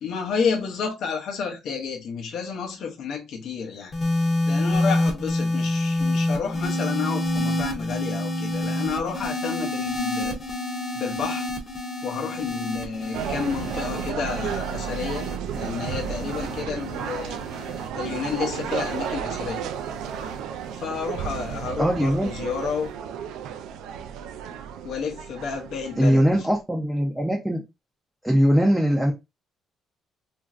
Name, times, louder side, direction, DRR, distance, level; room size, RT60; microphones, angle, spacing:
voice 1, 0.0-3.9 4.2-10.4 10.9-11.5 12.0-15.3 15.5-17.4 17.9-19.6 20.8-22.9 24.8-26.5, left 6 dB, 65° left, 0.6 m, -30 dB
sound 1, 3.9-20.4 21.3-21.7, left 1 dB, 30° left, 0.8 m, -28 dB
sound 2, 13.1-26.6, right 8 dB, 90° right, 0.3 m, -33 dB
voice 2, 21.8-22.3 26.0-27.6 28.2-29.1, equal, 5° right, 0.5 m, -21 dB
3.0 x 2.5 x 2.3 m
cardioid pair, 145°, 0 cm